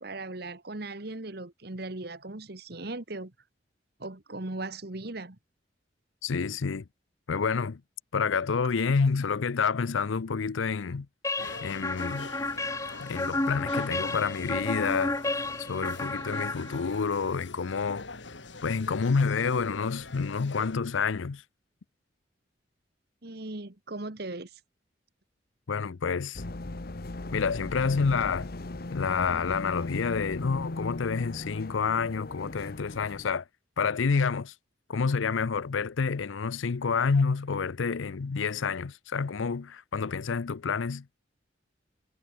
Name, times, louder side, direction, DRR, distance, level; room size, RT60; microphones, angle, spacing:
voice 1, 0.0-3.3 4.0-5.4 23.2-24.6, right 2 dB, 55° right, 1.5 m, -38 dB
voice 2, 6.2-6.8 7.3-7.8 8.1-11.1 11.6-12.3 13.0-15.2 15.7-18.0 18.6-21.4 25.7-26.4 27.3-28.5 28.9-33.4 33.8-34.5 34.9-41.2, left 5 dB, 85° left, 0.6 m, -28 dB
sound 1, 11.2-17.1, left 2 dB, 15° left, 1.8 m, -32 dB
sound 2, 11.4-20.8, left 3 dB, 70° left, 2.4 m, -44 dB
sound 3, 26.3-33.3, left 2 dB, 50° left, 1.1 m, -38 dB
head